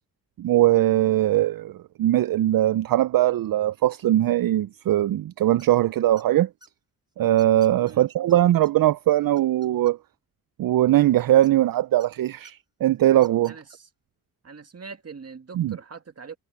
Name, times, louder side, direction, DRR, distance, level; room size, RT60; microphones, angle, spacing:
voice 1, 0.4-1.7 2.0-6.5 7.2-10.0 10.6-13.5 15.6-15.7, right 13 dB, 60° right, 0.5 m, -20 dB
sound 1, 5.6-5.8 6.2-6.7 7.4-7.9 8.3-8.4 8.6-8.7 9.1-10.2 11.4-12.1 12.4-12.5 13.1-13.8, right 1 dB, 10° right, 3.3 m, -53 dB
voice 2, 7.8-8.1 13.5-13.9 14.4-16.4, right 5 dB, 40° right, 1.9 m, -42 dB
wide cardioid pair, 110°, 39 cm